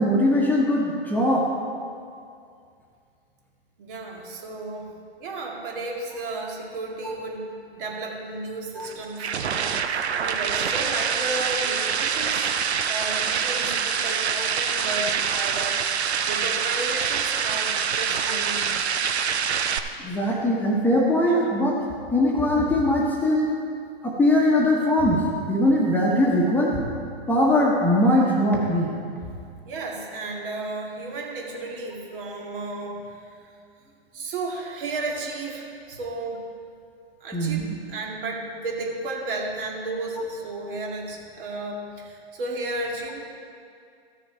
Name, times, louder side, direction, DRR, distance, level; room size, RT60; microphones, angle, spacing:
voice 1, 0.0-1.5 8.8-8.9 20.0-21.8 22.1-23.5 24.0-26.8 27.3-28.9 37.3-37.7, left 1 dB, 5° left, -3 dB, 1.2 m, -21 dB
voice 2, 3.8-4.9 5.2-12.5 12.9-15.8 16.3-18.7 21.3-21.5 29.7-33.5 34.1-36.4 37.2-43.2, right 2 dB, 55° right, -1 dB, 2.2 m, -33 dB
sound 1, 8.8-19.8, right 7 dB, 85° right, 0.7 m, -25 dB
14.0 x 6.6 x 4.4 m, 2.4 s
hypercardioid pair, 120°, 32 cm